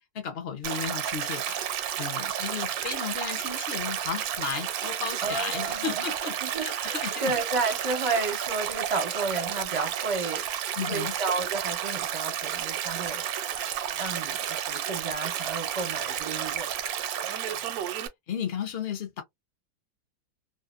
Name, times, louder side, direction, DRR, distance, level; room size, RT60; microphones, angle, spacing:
voice 1, 0.1-1.6 2.0-7.3 10.8-11.1 13.9-14.0 17.5-17.9 18.3-19.2, left 7 dB, 55° left, 0.7 m, -34 dB
Stream, 0.6-18.1, right 10 dB, 70° right, 0.9 m, -31 dB
voice 2, 5.2-10.4 10.8-13.2 14.0-16.7, right 3 dB, 30° right, 0.7 m, -32 dB
2.7 x 2.4 x 2.5 m
omnidirectional pair, 1.8 m